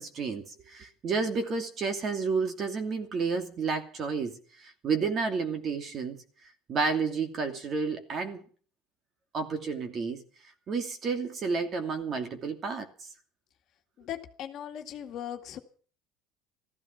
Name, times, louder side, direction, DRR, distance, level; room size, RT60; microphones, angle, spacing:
voice 1, 0.0-6.2 6.7-8.5 9.3-10.2 10.7-13.1, right 4 dB, 30° right, 2.7 m, -31 dB
voice 2, 14.0-15.6, left 10 dB, 40° left, 2.1 m, -38 dB
15.5 x 14.5 x 5.9 m
cardioid pair, 155°, 0 cm